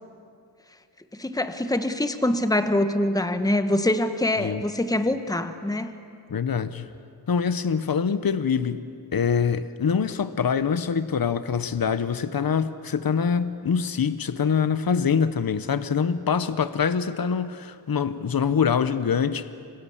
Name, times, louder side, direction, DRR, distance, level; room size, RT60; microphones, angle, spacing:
voice 1, 1.1-5.9, left 1 dB, 10° left, 9 dB, 1.2 m, -24 dB
voice 2, 6.3-6.9 7.3-8.8 9.1-19.5, left 6 dB, 55° left, 13 dB, 0.9 m, -24 dB
29.5 x 25.5 x 7.2 m, 2.4 s
wide cardioid pair, 115°, 42 cm